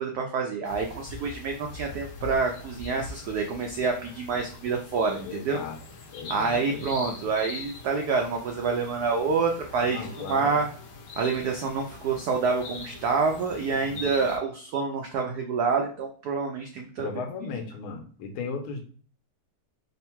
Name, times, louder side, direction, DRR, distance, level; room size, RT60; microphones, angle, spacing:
voice 1, 0.0-5.6 6.3-10.7 11.2-17.1, right 4 dB, 90° right, 2 dB, 0.8 m, -27 dB
sound 1, 0.7-14.4, left 3 dB, 65° left, 1.3 m, -43 dB
voice 2, 5.2-5.8 6.1-7.1 9.8-10.6 13.7-14.3 17.0-18.8, left 4 dB, 85° left, 3 dB, 1.6 m, -36 dB
3.7 x 2.2 x 4.3 m, 0.42 s
omnidirectional pair, 2.3 m